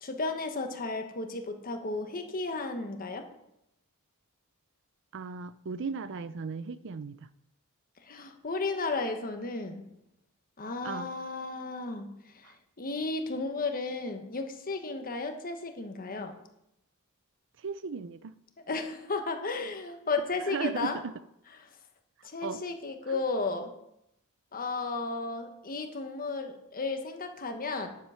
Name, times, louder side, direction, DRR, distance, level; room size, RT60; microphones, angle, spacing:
voice 1, 0.0-3.3 8.0-9.9 10.6-16.4 18.6-21.0 21.6-21.7 22.2-23.7 24.5-27.9, left 3 dB, 40° left, 6 dB, 1.3 m, -34 dB
voice 2, 5.1-7.2 10.8-11.1 17.6-18.3 20.5-21.1 22.4-22.6 23.1-23.2, right 5 dB, 55° right, 15 dB, 0.5 m, -36 dB
10.5 x 7.4 x 5.8 m, 0.80 s
head